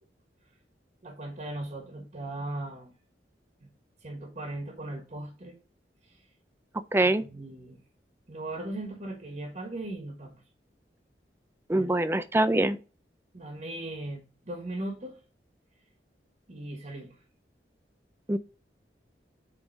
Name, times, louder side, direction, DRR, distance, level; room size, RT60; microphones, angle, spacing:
voice 1, 1.0-2.9 3.6-3.7 4.0-5.6 6.0-6.2 7.0-7.8 8.3-10.4 11.7-11.9 13.3-15.2 16.5-17.2, right 1 dB, 45° right, 1.5 m, -38 dB
voice 2, 6.9-7.2 11.7-12.8 18.3-18.4, right 1 dB, 15° right, 0.4 m, -24 dB
7.9 x 3.6 x 4.1 m
head